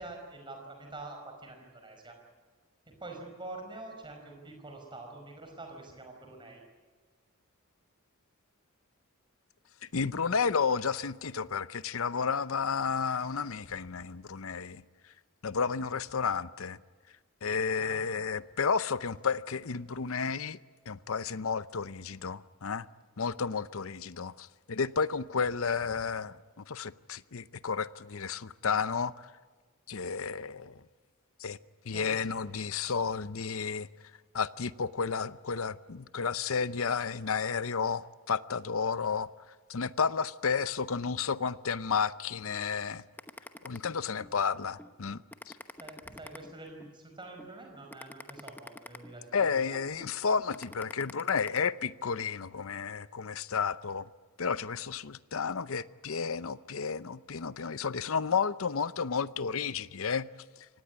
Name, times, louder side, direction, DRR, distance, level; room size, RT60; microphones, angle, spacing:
voice 1, 0.0-2.2 2.9-6.6 17.8-18.3 31.9-32.4 45.8-49.8, right 2 dB, 20° right, 5.1 m, -46 dB
voice 2, 9.9-14.8 15.4-16.8 17.4-20.6 20.9-22.9 23.2-26.3 26.7-29.3 29.9-30.8 31.4-31.6 31.8-33.9 34.3-39.3 39.7-43.0 43.6-45.2 49.3-54.1 54.4-60.3, left 5 dB, 65° left, 0.7 m, -32 dB
sound 1, 43.2-44.3 44.8-44.9 45.3-46.9 47.4-47.5 47.9-49.6 50.0-50.1 50.5-51.6, left 2 dB, 10° left, 1.0 m, -46 dB
25.5 x 18.5 x 9.6 m
head